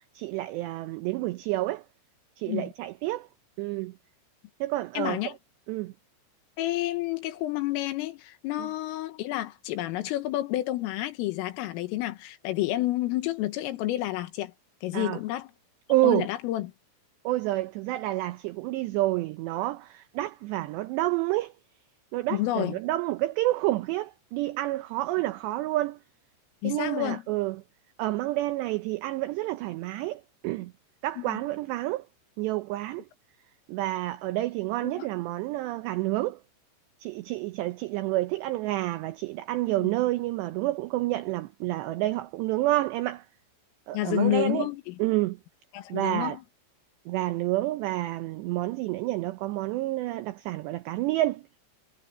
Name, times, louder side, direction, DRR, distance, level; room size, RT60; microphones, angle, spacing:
voice 1, 0.2-1.8 2.4-3.3 3.6-3.9 4.6-5.2 5.7-5.9 8.6-8.7 14.9-15.2 15.9-16.3 17.2-21.5 22.1-26.0 26.6-27.6 28.0-30.7 31.0-32.0 32.4-33.1 33.7-36.4 37.0-43.3 43.9-44.7 45.0-45.4 45.9-46.4 47.1-51.4, right 17 dB, 85° right, 2.4 m, -29 dB
voice 2, 5.0-5.4 6.6-14.5 14.8-15.5 16.0-16.7 22.3-22.8 26.6-27.2 31.2-31.4 34.8-35.1 39.8-39.9 43.9-45.0 45.7-46.4, left 16 dB, 85° left, 3.9 m, -30 dB
omnidirectional pair, 5.8 m